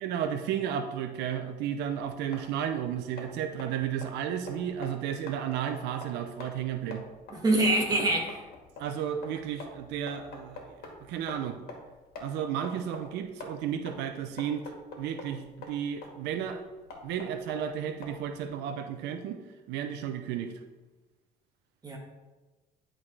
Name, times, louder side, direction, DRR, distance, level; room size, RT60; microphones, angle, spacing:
voice 1, 0.0-7.0 8.8-11.6 12.2-14.7 15.0-16.6 17.0-19.4 19.7-20.5, right 9 dB, 90° right, 7 dB, 0.5 m, -33 dB
sound 1, 1.8-18.5, left 3 dB, 70° left, 1.7 m, -47 dB
voice 2, 7.3-8.4 21.8-22.0, right 1 dB, 25° right, 0 dB, 1.7 m, -25 dB
10.5 x 3.7 x 3.2 m, 1.2 s
cardioid pair, 110°, 17 cm